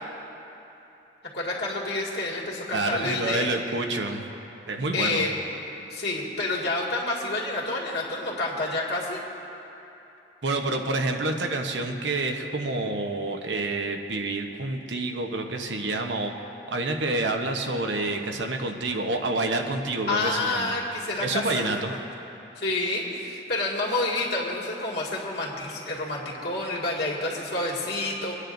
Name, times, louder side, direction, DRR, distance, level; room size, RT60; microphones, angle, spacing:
voice 1, 1.3-3.5 4.9-5.3 5.9-9.2 20.1-22.0 22.6-28.3, left 2 dB, 65° left, -4 dB, 2.0 m, -29 dB
voice 2, 2.7-4.2 4.7-5.3 10.4-16.3 16.7-20.7 21.2-21.9, right 2 dB, 85° right, 3 dB, 0.9 m, -28 dB
27.0 x 9.7 x 2.6 m, 3.0 s
head